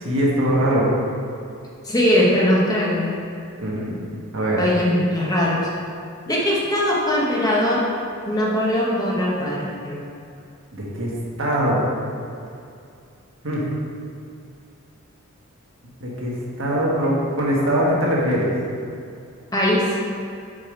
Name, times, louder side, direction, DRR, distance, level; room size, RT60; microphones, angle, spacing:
voice 1, 0.0-0.9 3.6-4.0 4.3-4.6 10.7-11.1 11.4-11.8 13.4-13.6 16.0-18.5, equal, 60° right, -5 dB, 1.5 m, -21 dB
voice 2, 1.8-3.1 4.6-5.7 6.3-7.9 8.3-10.1 19.5-19.9, left 1 dB, 15° left, -4 dB, 0.8 m, -20 dB
5.3 x 4.8 x 5.1 m, 2.5 s
head